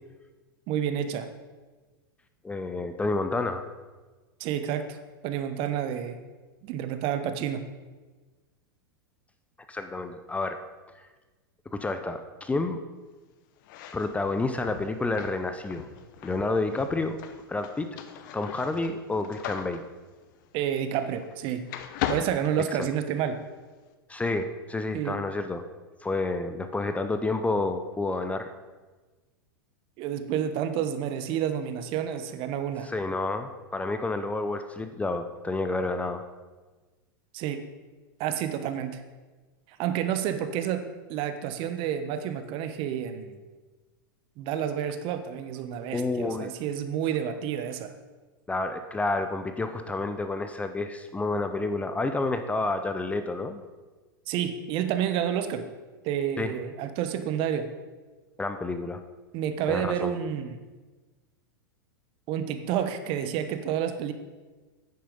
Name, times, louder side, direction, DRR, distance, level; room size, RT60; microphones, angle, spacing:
voice 1, 0.7-1.3 4.4-5.0 5.2-6.2 6.6-7.6 20.5-21.7 22.1-23.4 24.9-25.2 30.0-32.9 37.3-37.6 38.2-39.0 39.8-40.8 41.1-43.4 44.4-47.9 54.3-55.7 56.0-57.7 59.3-60.6 62.3-64.1, right 9 dB, 45° right, 10 dB, 1.1 m, -29 dB
voice 2, 2.4-3.7 9.7-10.6 11.7-12.8 13.9-15.9 16.2-17.2 17.5-18.0 18.3-19.8 22.8-22.9 24.1-25.7 26.0-28.5 32.9-36.2 45.9-46.5 48.5-53.6 56.4-56.6 58.4-59.0 59.7-60.1, left 2 dB, 10° left, 8 dB, 0.7 m, -29 dB
sound 1, 13.6-21.4 21.7-23.3, left 10 dB, 55° left, 1.0 m, -38 dB
9.5 x 9.5 x 5.3 m, 1.3 s
hypercardioid pair, 105°, 12 cm